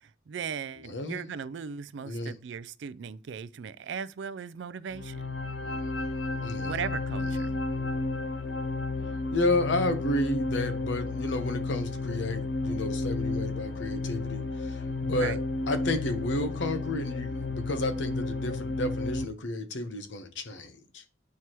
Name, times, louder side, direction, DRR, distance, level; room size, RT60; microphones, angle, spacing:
voice 1, 0.0-5.3 6.6-7.5 15.1-15.4, right 7 dB, 75° right, 0.4 m, -37 dB
voice 2, 0.8-1.2 2.0-2.3 6.4-6.8 7.4-7.5 9.3-15.4 15.7-21.0, left 1 dB, 75° left, 0.9 m, -31 dB
sound 1, 4.9-19.3, left 3 dB, 60° left, 0.5 m, -32 dB
9.5 x 4.6 x 3.0 m
head